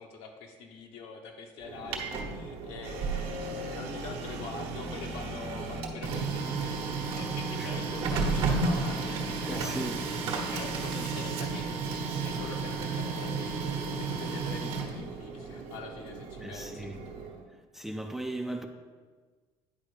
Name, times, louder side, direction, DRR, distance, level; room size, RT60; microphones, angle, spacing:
voice 1, 0.0-16.9, left 5 dB, 70° left, 1.1 m, -44 dB
Printer, 1.6-17.4, right 4 dB, 65° right, 1.2 m, -33 dB
voice 2, 9.5-10.0 16.4-17.0 17.7-18.7, right 1 dB, 5° right, 0.4 m, -37 dB
9.9 x 4.3 x 5.0 m
cardioid pair, 135°, 10 cm